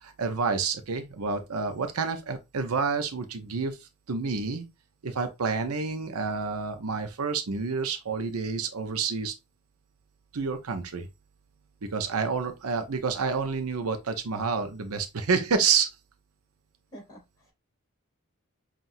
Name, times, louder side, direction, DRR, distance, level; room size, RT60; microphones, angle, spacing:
voice 1, 0.0-4.7 5.0-9.3 10.3-11.1 11.9-15.9, right 5 dB, 85° right, 0.7 m, -29 dB
voice 2, 16.9-17.5, equal, 20° left, 2.6 m, -48 dB
5.7 x 2.5 x 2.6 m
head